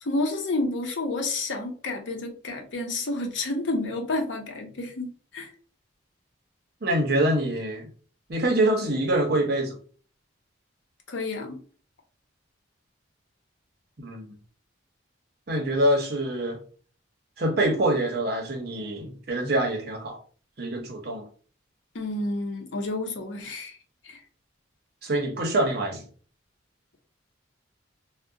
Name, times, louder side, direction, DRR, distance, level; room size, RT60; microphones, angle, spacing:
voice 1, 0.0-5.5 11.1-11.6 21.9-23.8 24.0-24.2, left 2 dB, 70° left, 0.7 m, -30 dB
voice 2, 6.8-7.9 8.3-9.8 14.0-14.4 15.5-16.6 17.4-20.2 20.6-21.2 25.0-26.0, right 1 dB, 55° right, 0.7 m, -25 dB
2.4 x 2.1 x 3.7 m
head